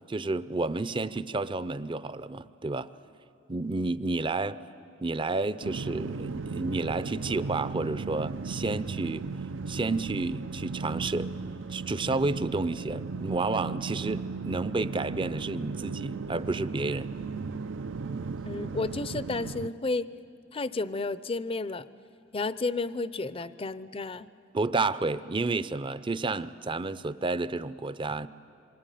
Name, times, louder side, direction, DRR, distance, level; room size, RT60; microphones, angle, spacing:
voice 1, 0.1-2.9 3.5-4.6 5.0-9.3 9.7-11.3 11.7-17.1 24.5-28.3, right 3 dB, 25° right, 0.6 m, -30 dB
sound 1, 5.6-19.7, right 4 dB, 75° right, 0.6 m, -36 dB
voice 2, 18.4-20.1 20.5-21.9 22.3-24.3, left 3 dB, 30° left, 0.6 m, -32 dB
27.0 x 24.0 x 9.2 m
head